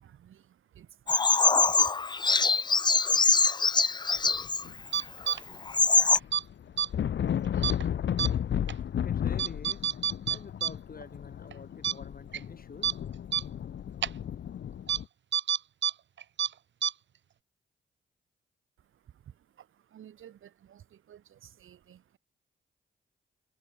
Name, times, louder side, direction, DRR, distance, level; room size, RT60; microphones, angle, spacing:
voice 1, 0.0-2.8 18.8-22.2, right 10 dB, 80° right, 6.0 m, -55 dB
Bird vocalization bird call bird song, 1.1-4.6 5.3-5.4 5.7-6.2, left 4 dB, 20° left, 0.4 m, -23 dB
sound 1, 4.3-5.2 5.5-15.0, left 9 dB, 65° left, 0.9 m, -33 dB
sound 2, 4.9-5.4 6.2-6.4 6.8-6.9 7.6-7.8 8.2-8.3 8.7-8.8 9.4-10.7 11.0-11.1 11.5-11.6 11.8-11.9 12.3-12.4 12.8-12.9 13.3-13.4 14.0-14.1 14.9-15.0 15.3-15.9 16.2-16.5 16.8-16.9, right 9 dB, 65° right, 0.9 m, -28 dB
voice 2, 9.0-9.8 10.3-12.9, left 5 dB, 45° left, 4.0 m, -47 dB
supercardioid pair, 55°, 20 cm